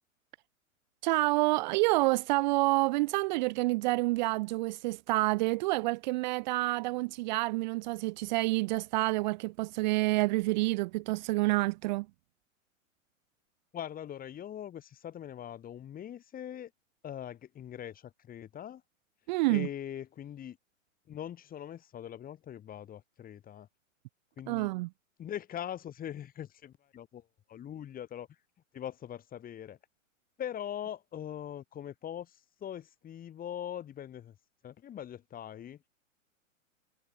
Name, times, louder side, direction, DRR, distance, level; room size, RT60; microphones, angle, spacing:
voice 1, 1.0-12.1 19.3-19.7 24.5-24.9, right 22 dB, 35° right, 0.7 m, -28 dB
voice 2, 13.7-16.7 17.0-18.8 19.5-20.6 21.1-23.7 24.4-24.7 25.2-27.2 27.5-28.3 28.7-29.8 30.4-34.4 34.6-35.8, left 10 dB, 20° left, 4.5 m, -42 dB
figure-of-eight pair, 110°, 40 cm